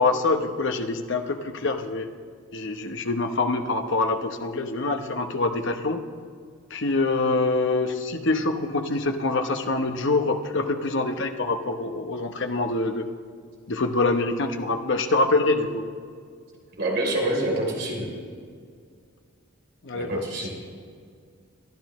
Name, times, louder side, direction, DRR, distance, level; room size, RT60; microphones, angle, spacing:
voice 1, 0.0-2.1 2.5-6.0 6.7-13.1 13.7-15.9 19.8-20.1, left 3 dB, 55° left, 6 dB, 0.9 m, -25 dB
voice 2, 16.8-18.1 19.9-20.5, right 1 dB, 50° right, -2 dB, 3.4 m, -26 dB
22.5 x 13.0 x 3.1 m, 2.1 s
head